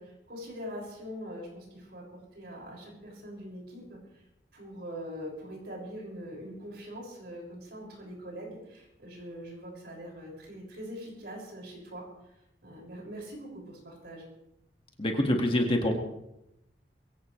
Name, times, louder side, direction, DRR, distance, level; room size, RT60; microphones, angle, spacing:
voice 1, 0.0-4.0 4.5-12.0 12.6-14.2, equal, 65° right, -1 dB, 6.4 m, -43 dB
voice 2, 15.0-15.9, left 1 dB, 30° left, 2 dB, 2.0 m, -25 dB
22.5 x 16.0 x 3.3 m, 0.85 s
head